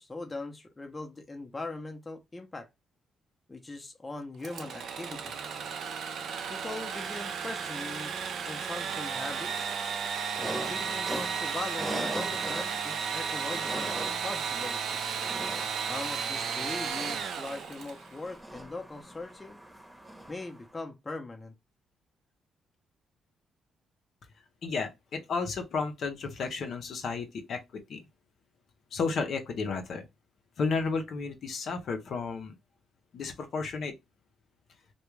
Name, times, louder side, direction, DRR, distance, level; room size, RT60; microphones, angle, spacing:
voice 1, 0.0-2.7 3.5-5.3 6.5-8.1 8.5-9.7 10.4-15.0 15.9-19.6 20.3-21.5, left 2 dB, 20° left, 0.6 m, -40 dB
Engine / Sawing, 4.4-18.1, right 6 dB, 65° right, 0.5 m, -34 dB
sound 1, 10.3-20.6, right 1 dB, 10° right, 0.9 m, -41 dB
voice 2, 24.6-27.6 27.9-28.0 28.9-30.1 30.6-32.5 33.1-33.9, left 4 dB, 60° left, 0.6 m, -32 dB
2.3 x 2.2 x 3.0 m
cardioid pair, 90°, 0 cm